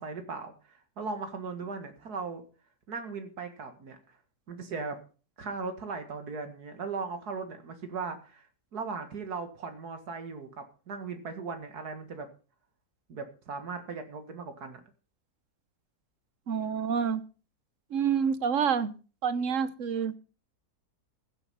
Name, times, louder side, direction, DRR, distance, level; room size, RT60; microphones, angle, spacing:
voice 1, 0.0-2.4 2.9-4.2 4.5-5.0 5.4-8.5 8.7-12.3 13.1-14.8, right 4 dB, 80° right, 7 dB, 2.3 m, -38 dB
voice 2, 16.5-17.2 17.9-18.9 19.2-20.2, right 7 dB, 55° right, 15 dB, 1.2 m, -28 dB
15.0 x 8.0 x 5.6 m, 0.37 s
omnidirectional pair, 1.6 m